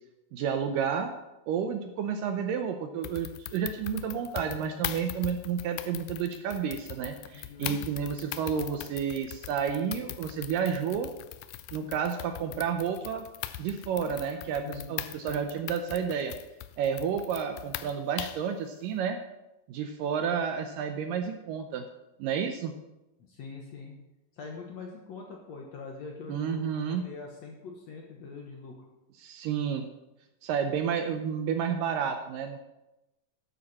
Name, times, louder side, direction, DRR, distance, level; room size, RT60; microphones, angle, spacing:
voice 1, 0.3-1.1 1.5-11.1 11.7-13.3 13.6-16.3 16.8-19.2 19.7-21.8 22.2-22.7 26.3-27.0 29.2-29.9 30.4-32.6, right 7 dB, 75° right, 6 dB, 2.1 m, -31 dB
sound 1, 3.0-18.5, left 14 dB, 85° left, 1.9 m, -40 dB
voice 2, 7.3-7.8 14.6-15.1 23.2-24.0 24.3-26.6 26.9-28.8, left 4 dB, 60° left, 0 dB, 1.9 m, -43 dB
12.5 x 9.7 x 4.2 m, 0.97 s
omnidirectional pair, 4.4 m